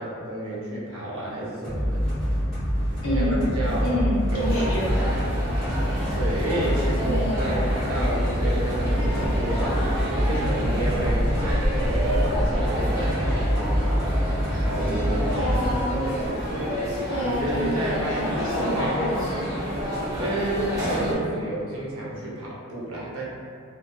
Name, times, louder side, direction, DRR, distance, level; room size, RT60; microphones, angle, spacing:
voice 1, 0.0-2.0 3.0-4.0 4.3-4.9 6.1-9.9 10.2-15.5 17.2-18.2 18.6-19.1 20.2-23.2, right 1 dB, 80° right, -6 dB, 0.7 m, -31 dB
Dark Zion, 1.6-15.8, equal, ahead, 1.3 m, -26 dB
voice 2, 3.0-3.5 3.8-5.2 7.0-7.7 15.2-16.0 17.1-19.4, equal, 75° left, -7 dB, 0.7 m, -28 dB
sound 1, 4.3-21.2, equal, 15° right, 0.5 m, -29 dB
2.6 x 2.5 x 2.3 m, 2.2 s
head